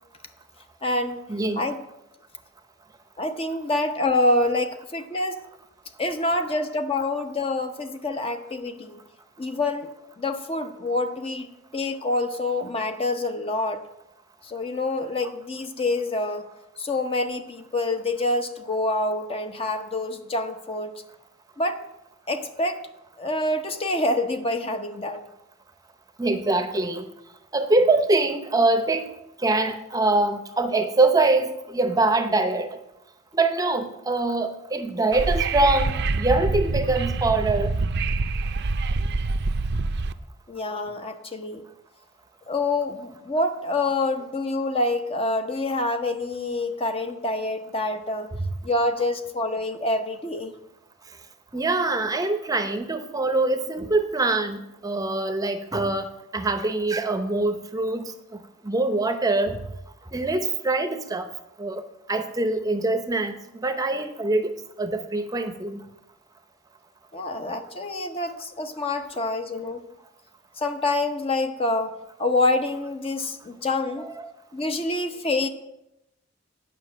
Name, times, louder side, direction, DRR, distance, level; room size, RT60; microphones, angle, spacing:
voice 1, 0.8-1.2 1.6-1.7 3.2-5.4 6.0-9.0 9.4-9.9 10.2-13.8 14.5-16.4 16.8-20.9 21.6-21.8 22.3-22.8 23.2-25.2 40.5-41.6 42.5-48.3 48.6-50.5 67.1-69.8 70.6-74.0 74.5-75.5, left 2 dB, 30° left, 7 dB, 0.8 m, -26 dB
voice 2, 26.2-27.0 27.5-29.1 29.4-32.7 33.3-37.7 51.5-58.0 58.6-59.6 60.1-61.3 61.6-61.8 62.1-63.4 63.6-65.8 74.0-74.3, right 2 dB, 20° right, 8 dB, 0.7 m, -24 dB
Wind / Subway metro underground, 35.1-40.1, right 3 dB, 60° right, 0.5 m, -25 dB
9.4 x 5.8 x 7.6 m, 0.87 s
head